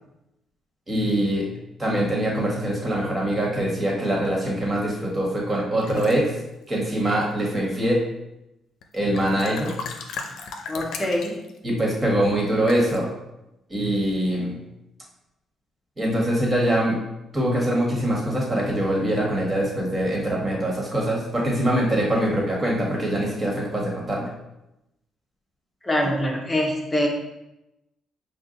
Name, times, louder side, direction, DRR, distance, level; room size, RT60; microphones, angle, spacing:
voice 1, 0.9-1.5 1.8-6.3 6.7-8.0 8.9-9.7 11.6-13.1 13.7-14.6 16.0-17.0 17.3-24.3, right 1 dB, 25° right, -2 dB, 1.6 m, -23 dB
sound 1, 5.8-6.2 6.9-7.5 8.8-8.9 9.1-11.6 12.7-13.0, left 5 dB, 80° left, 0.5 m, -36 dB
voice 2, 10.7-11.4 25.8-27.1, equal, 20° left, 0 dB, 0.8 m, -24 dB
5.4 x 2.3 x 3.9 m, 0.90 s
cardioid pair, 90°, 0 cm